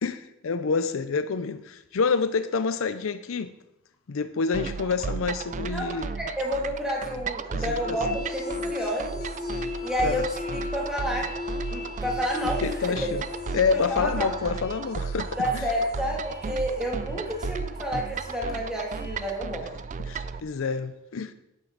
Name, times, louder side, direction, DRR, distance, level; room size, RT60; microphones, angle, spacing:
voice 1, 0.0-3.5 4.1-6.1 7.5-8.0 10.0-10.2 12.6-13.2 13.5-15.7 20.0-21.3, left 5 dB, 70° left, 0.5 m, -28 dB
sound 1, 4.5-20.4, right 5 dB, 35° right, 0.4 m, -34 dB
voice 2, 5.7-9.2 9.8-11.3 11.7-12.9 13.9-14.3 15.4-19.7, equal, 5° right, 2.4 m, -30 dB
sound 2, 7.8-19.3, left 3 dB, 50° left, 4.0 m, -38 dB
11.0 x 9.4 x 3.9 m
head